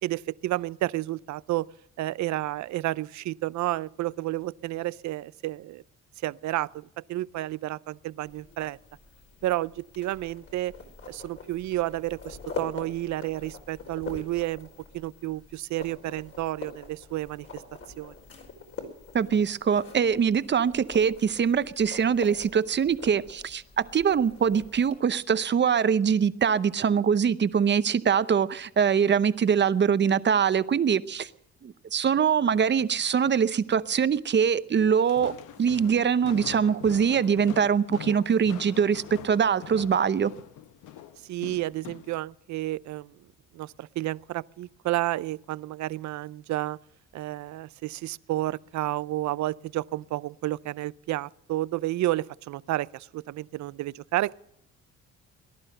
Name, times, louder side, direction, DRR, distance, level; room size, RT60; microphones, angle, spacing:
voice 1, 0.0-1.7 2.0-5.8 6.2-8.8 9.4-10.7 11.1-14.7 14.9-17.6 18.0-18.1 41.3-43.1 43.5-46.8 47.1-54.3, right 16 dB, 70° right, 0.5 m, -31 dB
sound 1, 8.2-25.0, left 4 dB, 50° left, 4.6 m, -44 dB
voice 2, 19.1-31.3 31.6-35.3 35.6-40.3, right 7 dB, 35° right, 0.7 m, -23 dB
Walk footsteps, 34.9-42.2, left 11 dB, 85° left, 0.9 m, -44 dB
18.5 x 11.5 x 6.6 m
cardioid pair, 90°, 30 cm